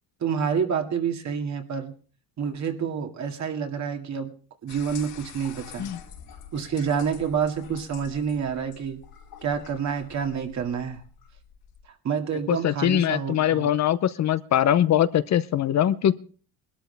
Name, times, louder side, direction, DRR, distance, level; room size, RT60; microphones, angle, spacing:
voice 1, 0.2-1.9 2.4-4.3 4.6-5.9 6.5-9.0 9.4-11.0 12.0-13.7, right 7 dB, 50° right, 5 dB, 2.3 m, -28 dB
sound 1, 4.7-11.9, left 8 dB, 75° left, 4.2 m, -46 dB
voice 2, 12.5-16.2, left 11 dB, 50° left, 14 dB, 0.7 m, -22 dB
21.0 x 12.5 x 3.4 m, 0.39 s
cardioid pair, 115°, 36 cm